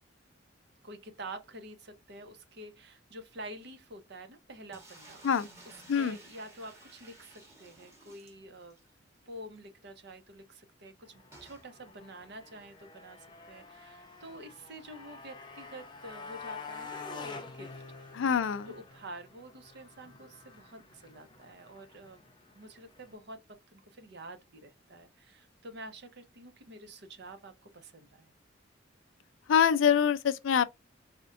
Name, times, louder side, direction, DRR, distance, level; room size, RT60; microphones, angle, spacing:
voice 1, 0.8-5.2 5.6-8.8 9.3-18.2 18.7-22.2 22.5-28.3, right 1 dB, 60° right, 0.7 m, -48 dB
sound 1, 4.7-8.9 9.2-9.3 9.6-9.7 11.3-11.7, right 1 dB, 15° right, 1.2 m, -54 dB
Motorcycle, 11.0-23.1, left 4 dB, 25° left, 0.6 m, -48 dB
voice 2, 18.1-18.7 29.5-30.6, left 7 dB, 85° left, 0.4 m, -25 dB
4.2 x 2.2 x 2.5 m
head